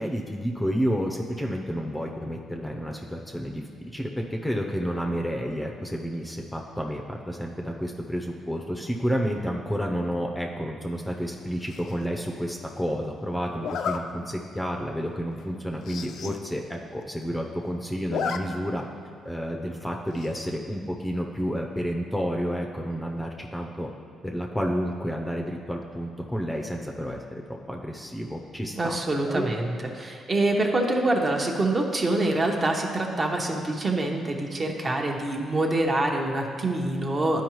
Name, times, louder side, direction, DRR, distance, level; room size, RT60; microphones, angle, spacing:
voice 1, 0.0-18.8 19.2-23.9 24.2-29.0 29.3-29.5, equal, 5° left, 0 dB, 0.6 m, -30 dB
Zipper (clothing), 11.7-12.1 13.6-14.0 14.6-14.7 15.1-15.2 15.4-15.5 15.8-16.4 16.7-16.8 17.0-17.6 17.9-18.4 18.7-18.8 20.1-20.5, left 7 dB, 75° left, 0.4 m, -32 dB
voice 2, 28.7-37.4, right 2 dB, 35° right, 1 dB, 0.9 m, -25 dB
11.0 x 4.8 x 3.1 m, 2.2 s
cardioid pair, 90°, 0 cm